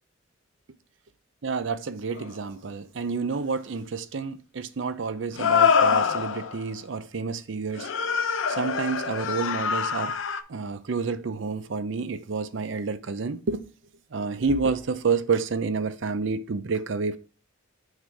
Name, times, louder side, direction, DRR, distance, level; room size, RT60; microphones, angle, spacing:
voice 1, 1.4-7.9 8.5-10.1 10.5-13.7 14.1-17.2, right 4 dB, 65° right, 0.5 m, -29 dB
sound 1, 2.2-2.3 5.4-6.6 7.8-10.4, left 6 dB, 70° left, 0.6 m, -24 dB
6.3 x 3.8 x 4.6 m
head